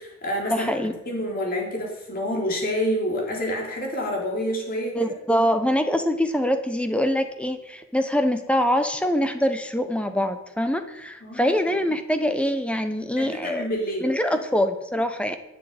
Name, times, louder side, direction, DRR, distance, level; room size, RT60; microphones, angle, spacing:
voice 1, 0.0-5.1 11.2-11.6 13.2-14.1, equal, 45° left, 0 dB, 3.6 m, -28 dB
voice 2, 0.5-0.9 4.9-13.7 14.0-15.3, equal, 5° left, 8 dB, 0.9 m, -24 dB
10.5 x 7.6 x 9.2 m, 0.88 s
head